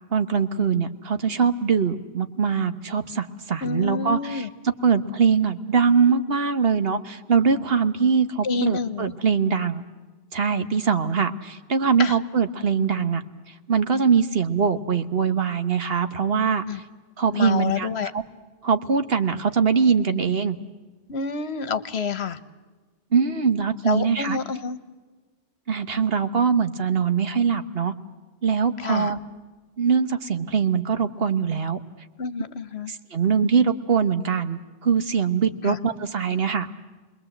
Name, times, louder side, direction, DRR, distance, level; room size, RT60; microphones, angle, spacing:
voice 1, 0.1-4.5 4.8-9.8 10.3-13.2 13.7-16.6 17.2-18.2 18.6-20.6 23.1-24.4 25.7-27.9 28.4-29.2 29.8-31.8 32.9-36.7, right 6 dB, 65° right, 9 dB, 1.4 m, -22 dB
voice 2, 3.6-4.5 8.4-9.1 12.0-12.2 16.6-16.8 17.3-18.1 21.1-22.4 23.8-24.8 28.8-29.1 32.2-32.9 35.6-35.8, left 5 dB, 75° left, 13 dB, 1.3 m, -28 dB
29.0 x 21.0 x 7.9 m, 1.3 s
omnidirectional pair, 1.1 m